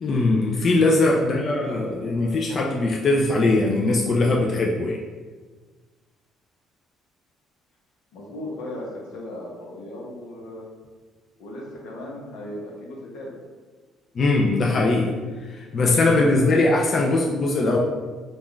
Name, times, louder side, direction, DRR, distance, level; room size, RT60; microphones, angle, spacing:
voice 1, 0.0-5.0 14.1-15.1 15.4-17.8, left 2 dB, 45° left, -2 dB, 0.3 m, -21 dB
voice 2, 1.2-2.7 8.1-10.7 11.4-13.3 15.6-16.5, left 1 dB, 85° left, -3 dB, 0.8 m, -37 dB
2.4 x 2.2 x 3.6 m, 1.4 s
cardioid pair, 95°, 0 cm